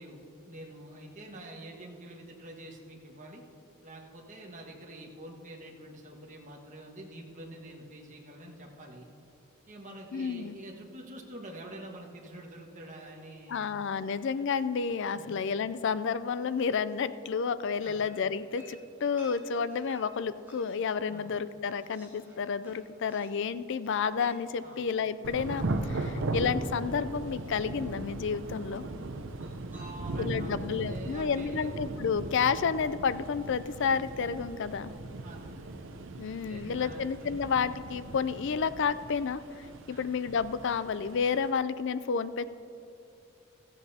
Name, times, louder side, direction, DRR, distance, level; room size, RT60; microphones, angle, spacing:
voice 1, 0.0-3.4 3.8-9.1 9.7-13.7 15.1-15.4 17.8-18.0 21.1-21.3 24.6-24.8 26.0-26.2 29.7-31.8 35.2-35.7 36.3-37.4 39.9-40.0, right 1 dB, 35° right, -1 dB, 1.5 m, -47 dB
voice 2, 10.1-10.6 13.5-28.8 30.2-34.9 36.2-42.5, left 6 dB, 55° left, 14 dB, 0.4 m, -31 dB
sound 1, 18.1-20.9 21.3-26.4 27.4-28.0 29.3-30.4, right 1 dB, 10° right, 2.8 m, -58 dB
Thunder / Rain, 25.2-41.5, right 2 dB, 60° right, 0.7 m, -38 dB
15.5 x 14.5 x 2.8 m, 2.7 s
head